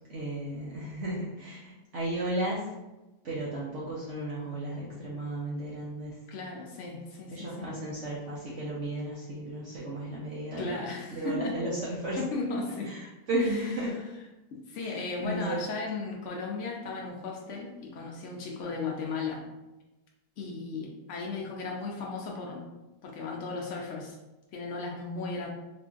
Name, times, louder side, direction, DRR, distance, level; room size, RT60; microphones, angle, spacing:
voice 1, 0.1-2.7 3.2-6.2 7.3-10.8 11.1-12.2 12.9-14.0 14.8-15.6, right 1 dB, 60° right, -6 dB, 0.8 m, -34 dB
voice 2, 6.3-7.7 10.6-11.6 12.2-12.9 14.5-19.5 20.4-22.7 23.0-24.2 24.5-25.5, left 3 dB, 75° left, -1 dB, 0.6 m, -35 dB
3.7 x 2.5 x 2.3 m, 1.0 s
omnidirectional pair, 1.8 m